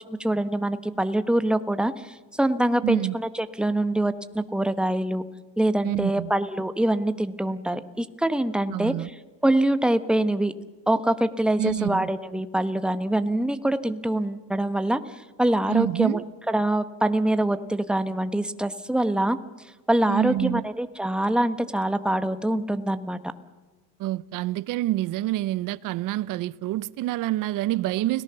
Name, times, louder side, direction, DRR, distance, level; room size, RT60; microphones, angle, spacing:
voice 1, 0.0-5.2 5.6-8.9 9.4-10.5 10.9-15.0 15.4-16.2 16.5-19.4 19.9-23.2, right 1 dB, ahead, 1.1 m, -24 dB
voice 2, 2.8-3.1 5.8-6.3 8.7-9.1 11.6-12.1 15.7-16.2 20.1-20.6 24.0-28.2, right 15 dB, 55° right, 0.8 m, -27 dB
30.0 x 18.0 x 6.9 m
cardioid pair, 130°, 38 cm